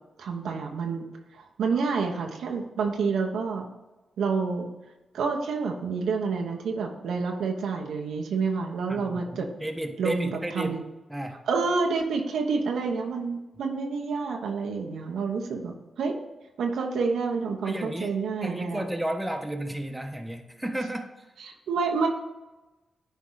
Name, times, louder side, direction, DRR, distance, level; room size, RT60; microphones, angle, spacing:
voice 1, 0.2-1.1 1.3-3.6 4.2-4.7 5.1-9.5 10.0-10.8 11.5-16.2 16.6-18.8 21.4-22.1, right 4 dB, 85° right, 2 dB, 1.0 m, -28 dB
voice 2, 8.9-10.7 11.1-11.4 17.6-21.3, right 1 dB, 10° right, 4 dB, 1.2 m, -33 dB
9.7 x 4.7 x 3.9 m, 1.1 s
supercardioid pair, 50°, 0 cm